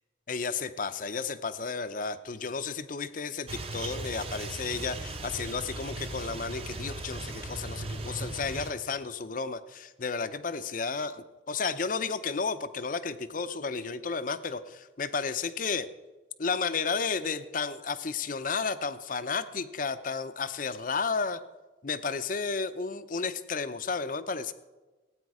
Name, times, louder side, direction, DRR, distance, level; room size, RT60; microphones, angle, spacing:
voice 1, 0.3-15.9 16.4-21.4 21.8-24.5, left 5 dB, 45° left, 12 dB, 0.6 m, -32 dB
sound 1, 3.5-8.7, right 2 dB, 30° right, 0.9 m, -38 dB
17.0 x 8.9 x 4.8 m, 1.2 s
head